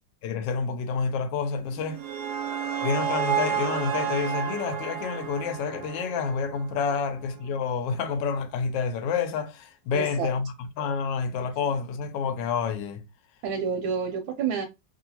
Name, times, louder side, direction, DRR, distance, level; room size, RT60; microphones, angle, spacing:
voice 1, 0.2-2.0 2.8-13.0, left 5 dB, 75° left, 1.2 m, -29 dB
sound 1, 1.7-6.8, right 7 dB, 70° right, 1.0 m, -31 dB
voice 2, 9.9-10.3 13.4-14.6, right 6 dB, 90° right, 1.4 m, -29 dB
3.0 x 2.7 x 2.8 m
omnidirectional pair, 2.1 m